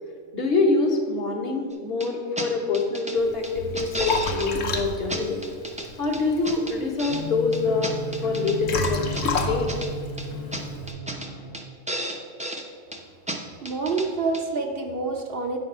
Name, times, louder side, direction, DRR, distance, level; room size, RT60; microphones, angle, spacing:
voice 1, 0.3-5.4 6.0-7.9 8.2-9.1 9.4-9.7, left 3 dB, 55° left, 0 dB, 1.3 m, -25 dB
sound 1, 2.0-2.1 2.4-2.5 2.7-3.2 3.4-4.5 4.8-4.9 5.1-5.9 6.1-7.2 7.5-8.6 8.8-9.9 10.2-10.3 10.5-10.6 10.9-11.3 11.5-11.6 11.9-12.6 12.9-13.0 13.3-13.4 13.6-14.1 14.3-14.4, right 1 dB, 10° right, 0.5 m, -32 dB
Liquid, 3.2-10.9, left 3 dB, 85° left, 1.2 m, -32 dB
sound 2, 7.1-11.6, left 2 dB, 70° left, 1.3 m, -34 dB
voice 2, 13.6-15.6, right 3 dB, 55° right, 2 dB, 0.8 m, -27 dB
9.0 x 4.1 x 6.0 m, 2.1 s
omnidirectional pair, 1.3 m